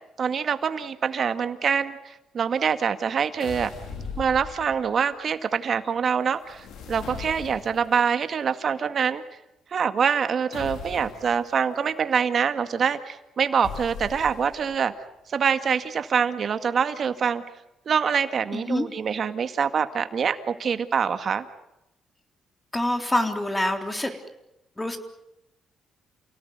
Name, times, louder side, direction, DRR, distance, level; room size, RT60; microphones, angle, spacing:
voice 1, 0.2-3.7 4.2-9.2 9.7-14.9 15.3-17.4 17.9-21.4, right 6 dB, 50° right, 9 dB, 2.0 m, -25 dB
sound 1, 3.4-5.0 6.4-8.0 10.5-11.4 13.6-14.7, left 6 dB, 80° left, 5.0 m, -39 dB
voice 2, 18.5-18.9 22.7-24.1 24.8-25.0, left 1 dB, 15° left, 6 dB, 3.6 m, -26 dB
29.5 x 18.0 x 9.6 m, 0.90 s
cardioid pair, 90°, 0 cm